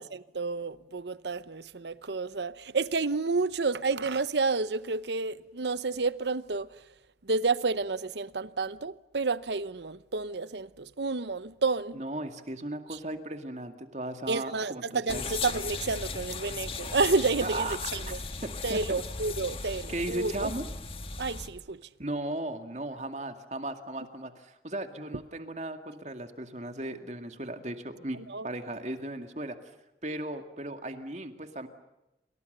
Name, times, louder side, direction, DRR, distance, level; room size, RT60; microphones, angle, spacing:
voice 1, 0.0-6.7 7.3-12.0 12.9-13.0 14.3-18.2 18.6-20.5 21.2-21.8 28.3-28.5, right 4 dB, 80° right, 0.9 m, -30 dB
voice 2, 11.9-15.2 17.4-17.8 18.1-18.2 18.4-19.0 19.9-20.7 22.0-28.2 28.4-29.6 30.0-31.7, right 1 dB, 40° right, 2.2 m, -36 dB
sound 1, 15.1-21.5, left 4 dB, 30° left, 1.8 m, -37 dB
28.5 x 26.0 x 6.8 m
head